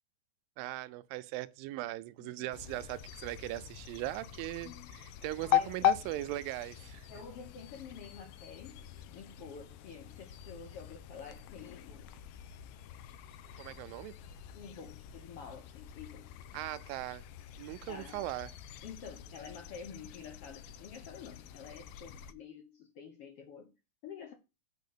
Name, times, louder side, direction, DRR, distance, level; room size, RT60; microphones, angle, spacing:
voice 1, 0.6-7.1 13.6-14.2 16.5-17.3 17.6-18.5, right 16 dB, 80° right, 2.3 m, -39 dB
sound 1, 2.5-22.3, left 13 dB, 90° left, 2.6 m, -40 dB
voice 2, 4.6-5.0 5.4-5.9 7.1-12.1 14.5-16.3 17.9-18.3 18.8-23.7 24.0-24.3, left 6 dB, 70° left, 1.4 m, -49 dB
8.3 x 4.5 x 6.6 m
omnidirectional pair, 4.1 m